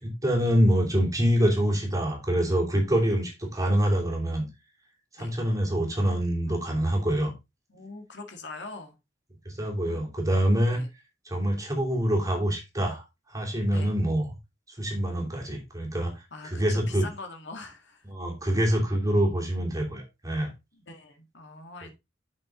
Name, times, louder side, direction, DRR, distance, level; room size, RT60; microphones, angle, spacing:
voice 1, 0.0-4.5 5.1-7.3 9.4-10.8 11.2-14.3 14.7-17.1 18.1-20.5, equal, 20° right, 2.9 m, -25 dB
voice 2, 7.7-9.0 9.8-10.0 10.7-10.9 13.7-13.9 16.3-18.1 20.7-21.9, left 3 dB, 65° left, 2.0 m, -43 dB
8.4 x 6.3 x 3.8 m
head